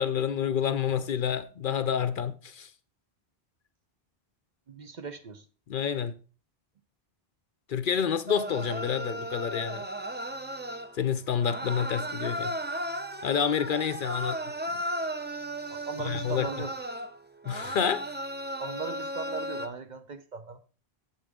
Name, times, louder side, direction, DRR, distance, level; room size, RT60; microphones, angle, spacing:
voice 1, 0.0-2.7 5.7-6.1 7.7-9.9 10.9-12.6 13.2-14.4 14.7-14.8 16.0-16.5 17.5-18.0, left 8 dB, 60° left, 0.7 m, -28 dB
voice 2, 4.7-5.5 15.7-16.7 18.6-20.6, right 4 dB, 50° right, 0.7 m, -38 dB
sound 1, 8.3-11.0 11.4-19.7, right 1 dB, 15° right, 0.5 m, -35 dB
8.6 x 7.2 x 3.6 m
omnidirectional pair, 1.1 m